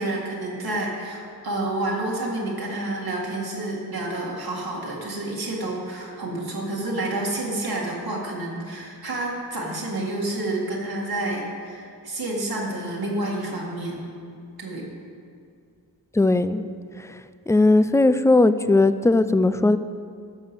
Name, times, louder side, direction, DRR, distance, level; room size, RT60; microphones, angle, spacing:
voice 1, 0.0-14.0 14.6-14.9, right 2 dB, 90° right, -3 dB, 2.0 m, -29 dB
voice 2, 16.1-16.6 17.0-17.1 17.5-19.8, left 2 dB, 10° left, 13 dB, 0.4 m, -18 dB
11.5 x 6.6 x 6.0 m, 2.4 s
cardioid pair, 45°, 36 cm